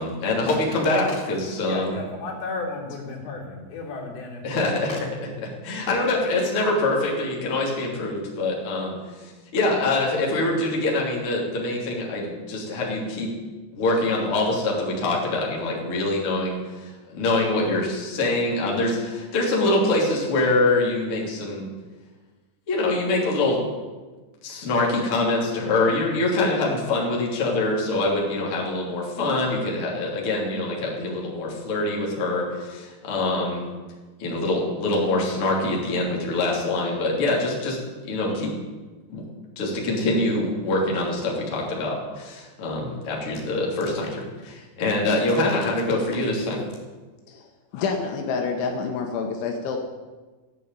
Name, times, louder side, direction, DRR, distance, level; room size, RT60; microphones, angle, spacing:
voice 1, 0.0-2.1 4.4-13.3 13.7-21.7 22.7-23.6 24.4-33.7 34.2-37.8 38.0-38.5 39.1-39.2 39.6-46.6, left 2 dB, 35° left, -3 dB, 3.4 m, -24 dB
voice 2, 1.6-4.6 44.7-45.2, left 3 dB, 60° left, -4 dB, 5.6 m, -34 dB
voice 3, 47.7-49.8, left 5 dB, 85° left, 2 dB, 3.8 m, -27 dB
15.5 x 8.7 x 9.0 m, 1.3 s
omnidirectional pair, 5.3 m